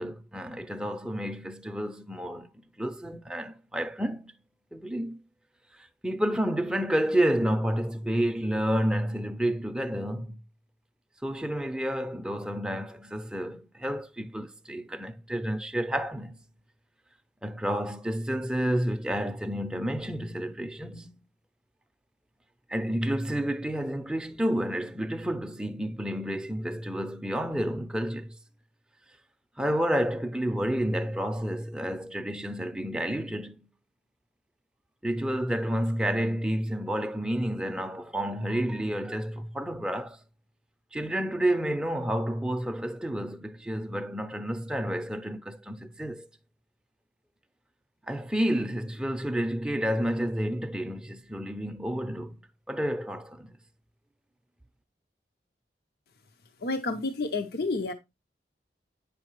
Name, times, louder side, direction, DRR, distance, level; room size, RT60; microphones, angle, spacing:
voice 1, 0.0-4.3 4.7-5.2 5.7-10.4 11.2-16.4 17.4-21.2 22.7-28.4 29.6-33.7 35.0-40.2 40.9-46.3 48.1-52.4 52.7-53.6, equal, 5° right, 0.5 m, -30 dB
voice 2, 56.6-57.9, left 3 dB, 55° left, 0.6 m, -30 dB
9.1 x 5.5 x 3.0 m
head